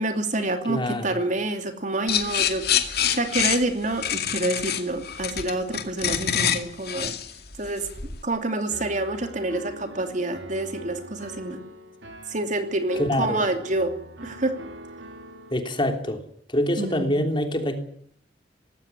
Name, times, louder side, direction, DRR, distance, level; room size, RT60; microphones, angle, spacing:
voice 1, 0.0-7.1 7.6-7.9 8.2-11.6 12.3-13.9 14.2-14.5 16.8-17.3, right 2 dB, 45° right, 7 dB, 2.8 m, -27 dB
voice 2, 0.7-1.2 13.0-13.4 15.5-16.2 16.5-17.8, left 1 dB, 25° left, 5 dB, 3.3 m, -25 dB
sound 1, 2.1-8.2, left 9 dB, 55° left, 2.2 m, -26 dB
Piano, 8.7-15.5, right 1 dB, 70° right, 2.7 m, -42 dB
19.5 x 16.5 x 9.7 m, 0.64 s
head